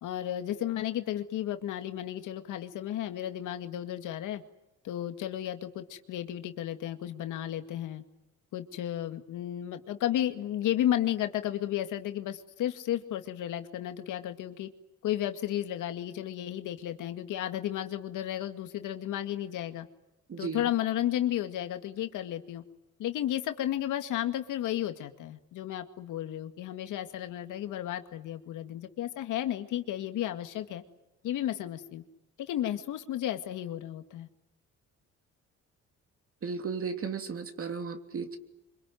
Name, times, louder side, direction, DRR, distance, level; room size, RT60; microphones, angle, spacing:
voice 1, 0.0-4.4 4.8-8.0 8.5-14.7 15.0-19.9 20.4-22.6 23.0-30.8 31.2-32.0 32.4-34.3, left 12 dB, 85° left, 8 dB, 2.1 m, -33 dB
voice 2, 20.3-20.6 36.4-38.4, right 5 dB, 45° right, 7 dB, 3.2 m, -35 dB
25.5 x 24.0 x 9.4 m, 0.94 s
cardioid pair, 90°, 30 cm